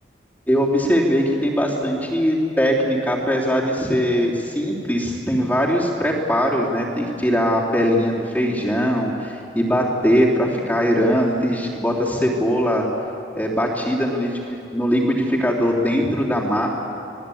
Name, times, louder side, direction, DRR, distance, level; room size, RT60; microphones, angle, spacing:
voice 1, 0.5-12.8 13.3-16.7, equal, 10° left, -4 dB, 3.2 m, -21 dB
26.5 x 19.0 x 8.6 m, 2.7 s
head